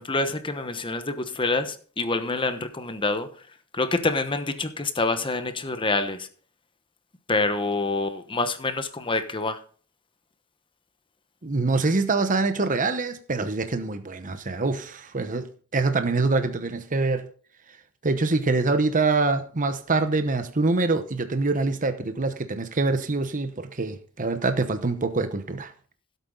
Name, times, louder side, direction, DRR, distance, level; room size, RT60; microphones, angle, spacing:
voice 1, 0.0-3.4 3.7-6.3 7.3-9.6, left 3 dB, 25° left, 1.1 m, -26 dB
voice 2, 11.4-17.3 18.0-25.7, right 3 dB, 40° right, 1.0 m, -25 dB
16.0 x 8.3 x 3.9 m
head